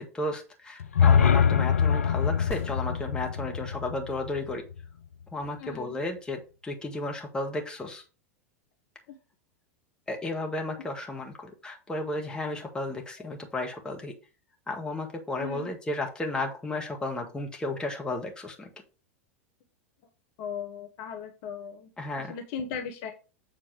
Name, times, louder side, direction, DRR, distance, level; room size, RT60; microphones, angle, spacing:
voice 1, 0.0-4.6 5.3-8.0 10.1-14.1 14.7-18.7 22.0-22.3, left 2 dB, 10° left, 1 dB, 1.8 m, -33 dB
sound 1, 0.8-4.9, left 7 dB, 75° left, 0.5 m, -24 dB
sound 2, 2.5-3.6 7.5-7.6, left 3 dB, 35° left, 3.0 m, -44 dB
voice 2, 5.6-6.0 9.1-9.2 10.2-10.3 13.2-13.4 15.4-15.7 20.4-21.9 22.2-23.1, left 6 dB, 50° left, 4 dB, 1.1 m, -38 dB
7.5 x 4.2 x 4.9 m, 0.34 s
figure-of-eight pair, 90°, 7 cm